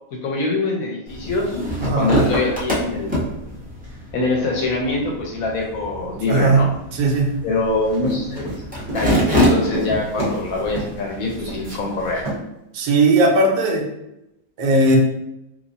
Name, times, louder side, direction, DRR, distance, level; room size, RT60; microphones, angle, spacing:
voice 1, 0.1-1.6 1.9-3.3 4.1-6.7 7.4-12.3, left 2 dB, 65° left, 0 dB, 1.0 m, -24 dB
sound 1, 1.1-12.2, equal, 10° right, 0.6 m, -26 dB
voice 2, 1.8-2.2 6.3-7.4 12.7-13.9 14.6-15.0, right 2 dB, 75° right, 1 dB, 1.1 m, -17 dB
Run, 7.8-10.4 10.7-11.0 11.5-11.8 12.2-12.4, right 1 dB, 35° right, 0.9 m, -29 dB
3.3 x 2.9 x 2.6 m, 0.88 s
omnidirectional pair, 1.8 m